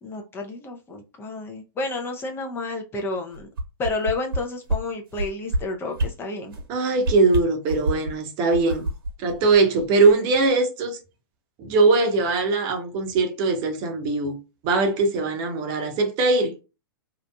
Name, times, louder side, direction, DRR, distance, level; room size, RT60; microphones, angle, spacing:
voice 1, 0.0-3.5 3.8-6.5, left 3 dB, 20° left, 0.5 m, -30 dB
sound 1, 3.3-4.4 4.7-4.8 5.1-5.6 5.9-6.1 6.5-6.7 7.0-8.1 8.5-10.1 10.4-10.5, right 1 dB, 70° right, 1.3 m, -26 dB
voice 2, 6.7-8.9 9.2-11.0 11.6-14.4 14.6-16.5, right 3 dB, 40° right, 0.8 m, -21 dB
2.8 x 2.4 x 2.2 m
hypercardioid pair, 110°, 12 cm